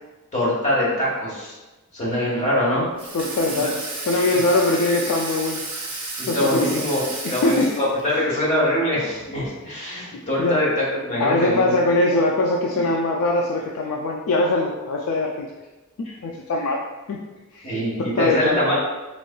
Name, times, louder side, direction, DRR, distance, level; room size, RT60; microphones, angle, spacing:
voice 1, 0.3-1.6 1.9-2.9 3.6-3.7 4.1-4.4 6.2-11.9 17.6-18.8, left 1 dB, 30° left, -6 dB, 1.2 m, -23 dB
Water tap faucet / Sink (filling or washing), 3.0-8.2, right 2 dB, 25° right, 0.9 m, -32 dB
voice 2, 3.1-5.6 6.3-6.8 7.2-7.7 8.1-8.2 10.4-10.6 11.2-15.5 16.0-16.8 17.1-17.2 17.5-17.7 18.0-18.6, left 2 dB, 65° left, 0 dB, 0.3 m, -22 dB
4.0 x 3.1 x 2.2 m, 1.1 s
head